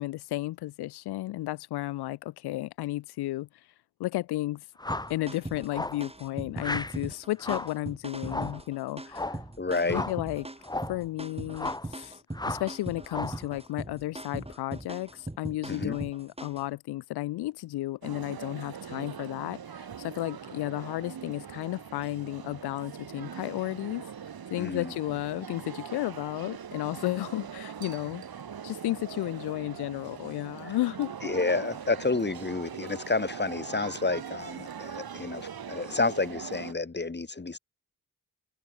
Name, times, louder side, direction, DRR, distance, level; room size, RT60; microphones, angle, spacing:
voice 1, 0.0-3.5 4.0-4.7 5.1-9.4 9.8-10.5 10.9-24.0 24.5-28.2 28.6-31.3, left 16 dB, 90° left, 0.6 m, -33 dB
sound 1, 4.8-5.2 5.7-6.1 6.6-7.0 7.4-7.8 8.3-8.6 9.1-9.4 9.9-10.2 10.6-11.0 11.5-11.9 12.3-12.7 13.1-13.5, left 2 dB, 10° left, 0.9 m, -34 dB
sound 2, 4.9-16.7, right 1 dB, 15° right, 5.4 m, -40 dB
voice 2, 9.6-10.0 15.7-16.0 24.6-24.9 30.6-30.7 31.2-37.6, left 3 dB, 25° left, 2.6 m, -30 dB
sound 3, 18.0-36.7, right 8 dB, 70° right, 5.5 m, -41 dB
supercardioid pair, 50°, 38 cm